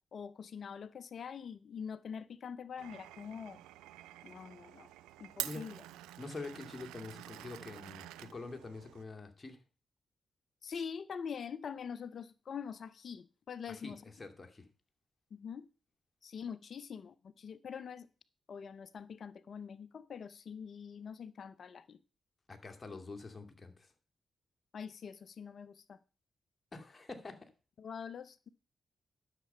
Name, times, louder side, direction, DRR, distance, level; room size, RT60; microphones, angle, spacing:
voice 1, 0.1-3.6 4.2-4.9 5.2-5.8 10.6-14.0 15.3-15.7 16.2-18.1 18.5-22.0 24.7-26.0 27.8-28.5, left 7 dB, 65° left, 0.5 m, -44 dB
Glass, 2.8-9.0, right 15 dB, 85° right, 0.4 m, -47 dB
voice 2, 6.2-9.6 13.7-13.9 14.2-14.6 22.5-23.9 26.7-27.4, left 3 dB, 35° left, 2.5 m, -46 dB
11.5 x 6.8 x 5.6 m
hypercardioid pair, 40°, 0 cm